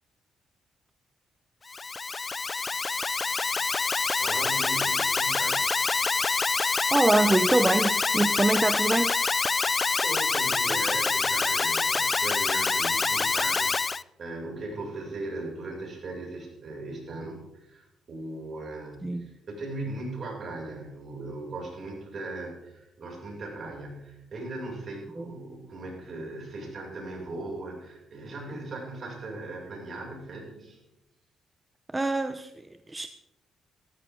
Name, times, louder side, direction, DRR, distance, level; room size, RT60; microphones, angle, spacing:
Alarm, 1.7-14.0, left 4 dB, 30° left, 0.4 m, -26 dB
voice 1, 3.9-5.8 10.0-30.8, right 2 dB, 50° right, -1 dB, 6.9 m, -38 dB
voice 2, 6.9-9.2 19.0-19.3 25.2-25.3 31.9-33.1, right 2 dB, 15° right, 9 dB, 0.8 m, -25 dB
17.5 x 14.0 x 3.9 m, 0.89 s
cardioid pair, 90°, 0 cm